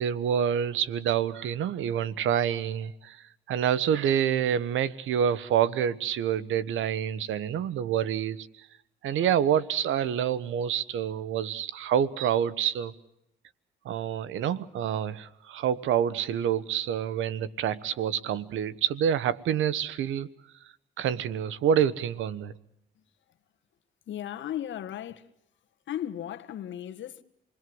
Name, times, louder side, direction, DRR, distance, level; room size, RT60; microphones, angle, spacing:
voice 1, 0.0-3.2 3.5-8.7 9.0-12.9 13.8-20.3 21.0-22.5, right 9 dB, 80° right, 1.2 m, -27 dB
voice 2, 24.1-25.3 25.9-27.2, left 11 dB, 70° left, 1.6 m, -36 dB
28.0 x 21.0 x 7.9 m
cardioid pair, 90°, 20 cm